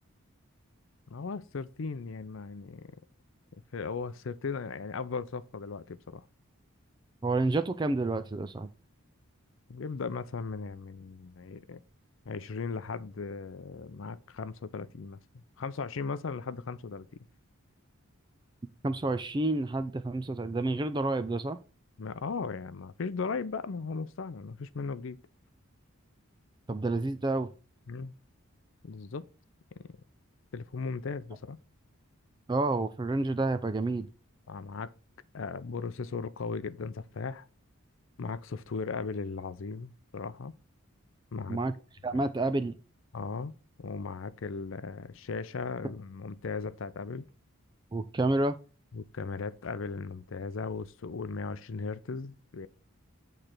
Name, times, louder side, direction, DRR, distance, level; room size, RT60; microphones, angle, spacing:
voice 1, 1.1-2.9 3.7-6.2 9.7-11.8 12.3-17.1 22.0-25.2 27.9-28.1 28.8-29.3 30.5-31.6 34.5-34.9 35.3-37.5 38.2-40.5 41.3-41.6 42.1-42.2 43.1-43.5 43.8-47.2 48.9-52.7, left 4 dB, 65° left, 0.5 m, -37 dB
voice 2, 7.2-8.7 18.8-21.6 26.7-27.5 32.5-34.1 41.5-41.7 42.0-42.7 47.9-48.5, right 2 dB, 20° right, 0.3 m, -29 dB
8.8 x 3.3 x 5.8 m
head